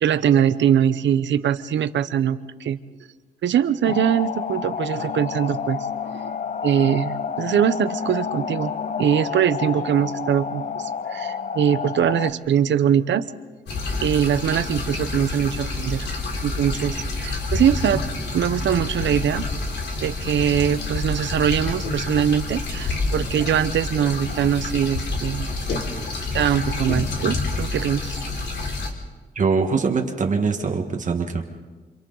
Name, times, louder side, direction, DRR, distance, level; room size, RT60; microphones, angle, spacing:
voice 1, 0.0-2.8 3.4-6.4 6.6-8.7 9.0-13.3 14.0-16.1 16.4-18.0 18.3-19.5 20.0-25.5 26.3-28.1, right 9 dB, 90° right, 12 dB, 0.9 m, -22 dB
sound 1, 3.9-12.3, left 6 dB, 40° left, 0.7 m, -29 dB
sound 2, 13.7-28.9, left 3 dB, 70° left, 3.6 m, -28 dB
voice 2, 29.3-31.4, right 4 dB, 45° right, 3 dB, 1.6 m, -22 dB
28.5 x 27.5 x 4.0 m, 1.3 s
wide cardioid pair, 135°, 18 cm